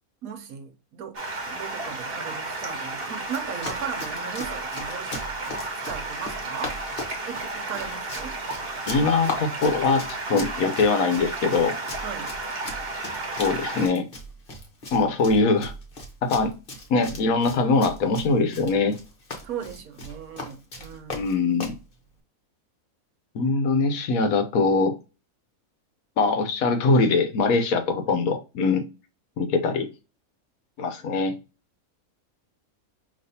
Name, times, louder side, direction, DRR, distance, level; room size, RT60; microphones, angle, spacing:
voice 1, 0.2-1.2 1.5-6.8 7.3-8.4 12.0-12.3 19.4-21.3, right 7 dB, 75° right, 1.3 m, -37 dB
Stream, 1.1-13.9, right 2 dB, 45° right, 1.2 m, -33 dB
Run, 3.3-21.8, left 2 dB, 40° left, 1.1 m, -38 dB
voice 2, 8.9-10.0 10.3-11.8 13.4-14.1 14.9-15.7 16.2-16.5 16.9-19.0 21.1-21.7 23.3-24.9 26.2-28.8 29.4-29.9 30.8-31.3, left 3 dB, 75° left, 1.2 m, -22 dB
5.2 x 2.9 x 2.7 m
omnidirectional pair, 1.5 m